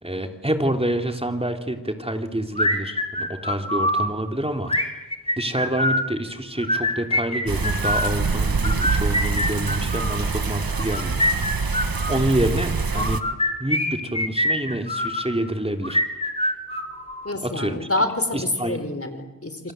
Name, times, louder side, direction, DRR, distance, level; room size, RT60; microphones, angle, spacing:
voice 1, 0.0-4.9 5.4-11.2 12.1-13.2 13.6-16.0 17.4-17.9 18.3-18.8, right 1 dB, 15° right, 4 dB, 3.4 m, -27 dB
sound 1, 2.6-4.1 4.7-6.1 6.6-8.1 8.6-10.2 10.8-12.2 12.9-15.3 15.8-17.3, left 1 dB, 15° left, 3.7 m, -24 dB
sound 2, 7.5-13.2, right 4 dB, 75° right, 1.6 m, -25 dB
voice 2, 17.2-19.7, left 2 dB, 40° left, 9 dB, 4.4 m, -27 dB
28.0 x 25.5 x 8.0 m, 1.1 s
wide cardioid pair, 55°, 35 cm